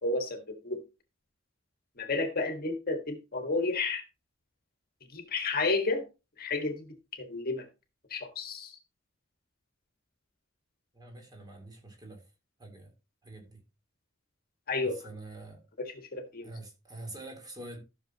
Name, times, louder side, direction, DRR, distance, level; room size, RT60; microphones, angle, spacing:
voice 1, 0.0-0.8 2.0-4.0 5.1-6.1 6.4-7.6 8.1-8.8 14.7-15.0 15.8-16.5, left 3 dB, 50° left, 1.6 m, -32 dB
voice 2, 10.9-12.2 12.6-12.9 13.2-13.6 14.8-15.6 16.4-17.8, right 2 dB, 20° right, 3.3 m, -45 dB
13.5 x 6.6 x 2.9 m
head